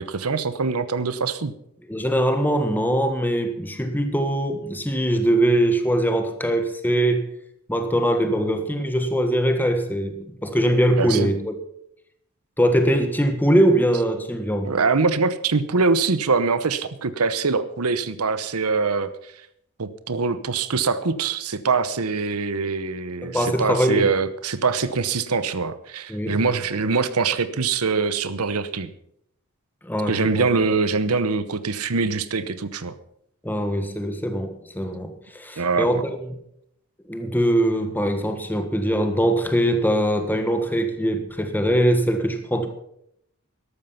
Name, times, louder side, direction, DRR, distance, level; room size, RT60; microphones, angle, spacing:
voice 1, 0.0-1.5 11.0-11.3 14.6-19.3 19.8-28.9 30.1-32.9 35.5-35.9, right 4 dB, 80° right, 0.9 m, -23 dB
voice 2, 1.9-7.2 7.7-11.5 12.6-14.8 23.2-24.0 26.1-26.4 29.8-30.5 33.4-36.3 37.1-42.7, right 1 dB, 10° left, 1.4 m, -22 dB
13.5 x 12.0 x 5.7 m
head